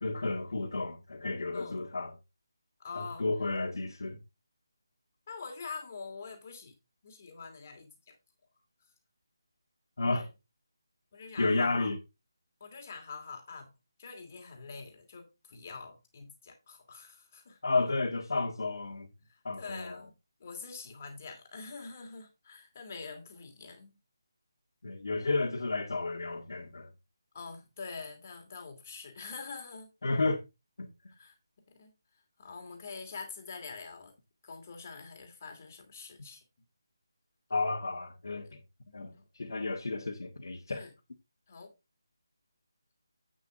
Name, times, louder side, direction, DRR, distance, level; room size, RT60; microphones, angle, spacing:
voice 1, 0.0-2.1 3.0-4.2 10.0-10.3 11.4-12.0 17.6-19.1 19.4-20.0 24.8-26.9 30.0-30.4 30.8-30.9 37.5-38.6 38.9-40.8, left 3 dB, 65° left, 1.8 m, -32 dB
voice 2, 2.8-3.3 5.3-6.7 7.0-8.2 10.0-10.3 11.1-11.9 12.6-13.7 14.0-17.6 19.2-20.1 20.4-23.9 27.3-29.9 31.1-31.4 31.7-31.9 32.4-34.1 34.4-36.4 39.1-39.2 40.7-40.9 41.5-41.7, left 4 dB, 35° left, 2.6 m, -45 dB
8.4 x 7.3 x 3.8 m
figure-of-eight pair, 170°, 2 cm